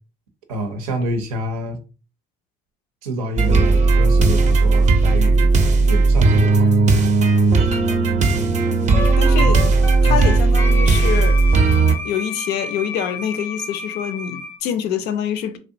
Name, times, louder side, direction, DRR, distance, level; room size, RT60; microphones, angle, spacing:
voice 1, 0.5-1.8 3.0-5.5 5.9-6.7 9.4-9.6 10.0-10.3, equal, 90° right, 0.5 m, -27 dB
sound 1, 3.4-11.9, right 3 dB, 40° right, 0.5 m, -15 dB
voice 2, 8.7-9.7 10.0-11.4 12.0-15.6, left 9 dB, 70° left, 0.4 m, -26 dB
Wind instrument woodwind instrument, 8.9-14.6, left 3 dB, 10° left, 0.4 m, -30 dB
2.5 x 2.1 x 2.6 m
hypercardioid pair, 55°, 18 cm